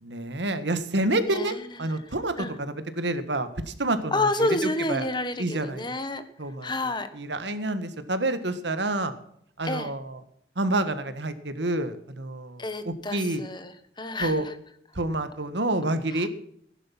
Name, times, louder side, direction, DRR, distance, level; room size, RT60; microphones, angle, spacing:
voice 1, 0.0-5.1 5.4-5.9 6.4-6.7 7.1-9.1 9.6-10.2 10.5-13.4 14.2-14.4 14.9-16.3, right 2 dB, 85° right, 11 dB, 1.7 m, -28 dB
voice 2, 1.3-2.0 2.4-2.5 4.1-6.2 6.6-7.1 9.6-9.9 12.6-14.5 16.2-16.3, left 2 dB, 25° left, 10 dB, 1.5 m, -29 dB
16.0 x 11.0 x 6.0 m, 0.69 s
head